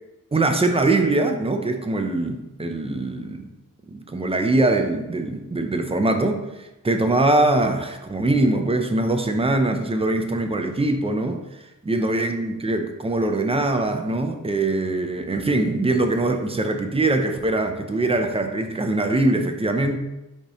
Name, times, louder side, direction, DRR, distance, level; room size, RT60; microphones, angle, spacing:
voice 1, 0.3-3.5 3.9-11.4 11.8-20.0, right 2 dB, 20° right, 5 dB, 0.3 m, -22 dB
4.7 x 2.7 x 4.1 m, 0.99 s
wide cardioid pair, 150°, 33 cm